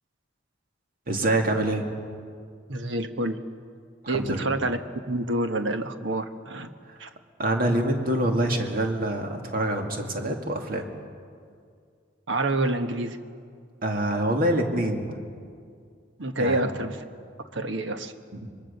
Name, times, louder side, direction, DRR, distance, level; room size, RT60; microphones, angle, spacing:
voice 1, 1.1-1.9 4.0-4.5 7.4-10.8 13.8-15.2 16.4-16.7 18.3-18.4, right 1 dB, 50° right, 3 dB, 2.3 m, -26 dB
voice 2, 2.7-3.4 4.1-4.8 5.1-6.7 7.0-7.1 12.3-13.2 16.2-17.0 17.5-18.1, right 2 dB, 75° right, 8 dB, 1.3 m, -27 dB
25.0 x 21.5 x 6.9 m, 2.2 s
head